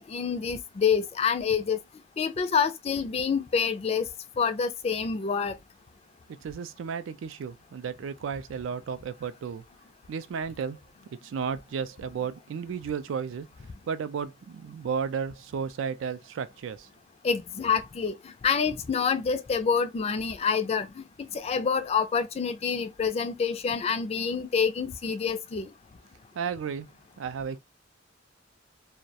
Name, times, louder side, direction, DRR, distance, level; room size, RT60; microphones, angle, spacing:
voice 1, 0.0-1.8 2.2-4.1 4.4-5.6 17.2-25.7, left 6 dB, 35° left, 0.3 m, -27 dB
voice 2, 6.4-9.6 10.1-10.8 11.2-13.5 13.9-16.9 26.4-26.9 27.2-27.6, right 6 dB, 85° right, 0.3 m, -33 dB
2.3 x 2.0 x 2.6 m
head